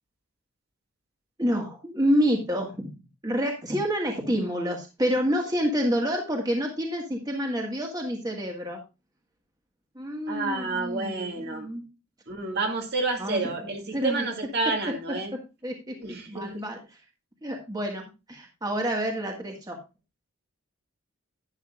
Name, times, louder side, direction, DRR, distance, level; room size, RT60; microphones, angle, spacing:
voice 1, 1.4-2.9 3.2-8.8 9.9-11.9 13.2-13.4 13.9-14.3 15.6-15.9 16.3-16.8 17.4-18.0 18.3-19.8, equal, 20° right, 1 dB, 1.7 m, -28 dB
voice 2, 10.3-11.7 12.3-15.3 16.0-16.5, right 3 dB, 50° right, 2 dB, 2.4 m, -29 dB
11.5 x 10.5 x 2.5 m, 0.27 s
head